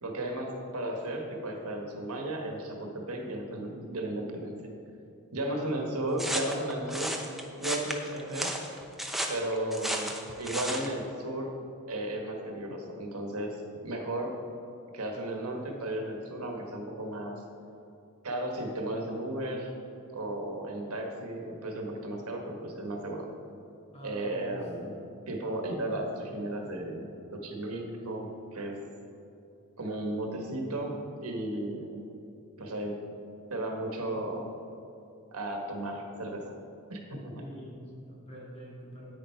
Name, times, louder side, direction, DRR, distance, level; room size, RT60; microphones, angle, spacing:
voice 1, 0.0-4.5 5.3-7.2 7.6-8.5 9.3-10.1 10.4-11.5 11.9-14.4 14.9-17.4 18.2-19.7 20.1-23.3 24.0-25.0 25.3-28.8 29.8-32.1 32.6-33.0 33.5-34.5 35.3-36.5 36.9-37.4, right 1 dB, 80° right, 2 dB, 1.5 m, -34 dB
voice 2, 5.5-5.9 23.9-24.6 37.3-39.1, equal, 30° left, -5 dB, 2.5 m, -45 dB
sound 1, 6.2-10.9, right 1 dB, ahead, 0.7 m, -34 dB
10.5 x 8.7 x 4.5 m, 2.7 s
head